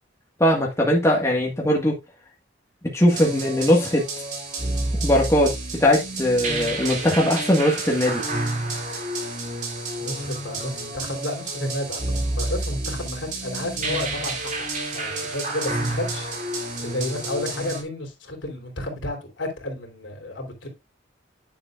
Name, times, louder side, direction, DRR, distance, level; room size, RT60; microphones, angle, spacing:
voice 1, 0.4-1.9 2.9-4.0 5.0-8.2, left 1 dB, 15° left, 1.7 m, -20 dB
sound 1, 3.1-17.8, right 2 dB, 40° right, 2.7 m, -29 dB
voice 2, 10.0-20.7, left 1 dB, 80° left, 3.4 m, -32 dB
10.0 x 7.2 x 2.5 m
head